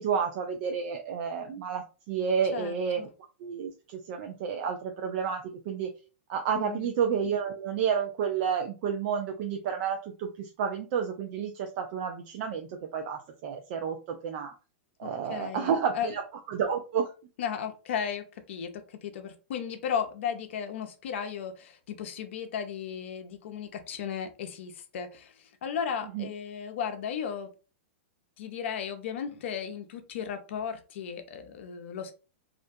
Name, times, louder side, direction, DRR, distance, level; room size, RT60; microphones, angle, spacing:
voice 1, 0.0-3.1 3.4-5.9 6.3-14.5 15.0-16.2 16.5-17.1 26.1-26.3, right 7 dB, 50° right, 3 dB, 0.4 m, -30 dB
voice 2, 2.5-3.1 6.5-6.9 15.0-16.1 17.4-27.5 28.4-32.1, left 7 dB, 65° left, 7 dB, 0.5 m, -35 dB
2.5 x 2.2 x 2.6 m, 0.33 s
hypercardioid pair, 120°, 7 cm